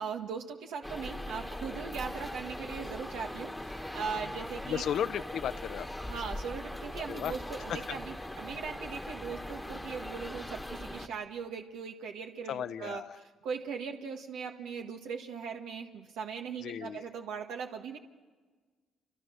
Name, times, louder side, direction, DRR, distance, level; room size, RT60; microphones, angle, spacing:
voice 1, 0.0-4.8 6.0-18.0, right 6 dB, 90° right, 3 dB, 1.5 m, -39 dB
sound 1, 0.8-11.1, left 1 dB, 5° left, 1.4 m, -40 dB
voice 2, 4.7-5.9 7.1-7.3 7.7-7.8 12.5-13.2 16.6-17.0, left 9 dB, 70° left, 14 dB, 0.8 m, -34 dB
28.5 x 26.5 x 6.5 m, 1.4 s
cardioid pair, 90°, 0 cm